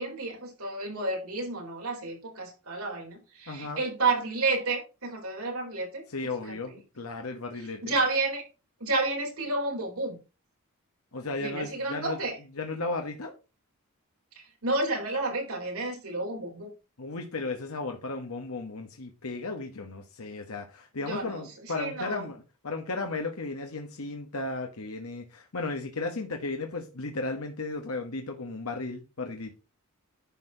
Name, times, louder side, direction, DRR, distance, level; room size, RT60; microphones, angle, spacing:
voice 1, 0.0-6.0 6.5-6.6 7.8-8.4 8.8-10.2 11.4-12.4 14.6-16.7 21.1-21.4 21.7-22.2, right 3 dB, 90° right, 4.0 m, -30 dB
voice 2, 3.5-3.8 6.1-8.0 11.1-12.2 12.6-13.3 17.0-29.5, left 3 dB, 80° left, 1.2 m, -35 dB
10.5 x 4.5 x 4.9 m
head